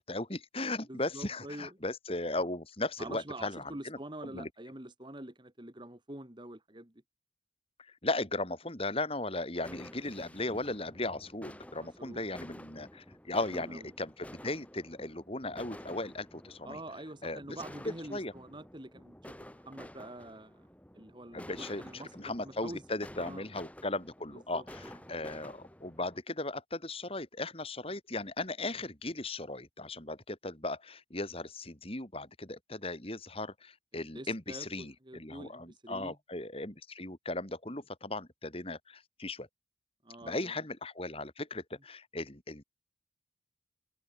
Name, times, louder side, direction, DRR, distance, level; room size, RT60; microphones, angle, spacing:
voice 1, 0.0-4.0 4.2-4.5 8.0-16.8 17.2-17.6 18.1-18.3 21.3-39.5 40.2-42.6, left 2 dB, 30° left, 3.6 m, -37 dB
voice 2, 0.9-1.8 3.0-6.9 11.7-12.5 13.5-13.9 16.6-20.6 20.9-22.1 22.4-22.8 23.2-23.5 24.3-24.6 33.9-36.2 40.0-40.5, right 1 dB, 25° right, 2.1 m, -46 dB
sound 1, 9.6-26.2, equal, 5° left, 3.3 m, -51 dB
head